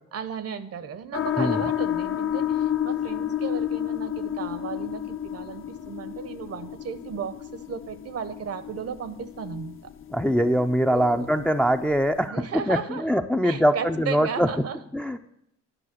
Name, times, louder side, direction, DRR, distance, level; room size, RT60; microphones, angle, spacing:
voice 1, 0.1-9.9 10.9-11.3 12.3-13.1 13.4-14.8, right 6 dB, 55° right, 12 dB, 0.8 m, -35 dB
sound 1, 1.1-12.3, left 10 dB, 45° left, 0.6 m, -31 dB
voice 2, 10.1-14.5 14.9-15.2, equal, 5° left, 6 dB, 0.4 m, -23 dB
10.0 x 5.6 x 7.6 m, 0.77 s
cardioid pair, 90°, 30 cm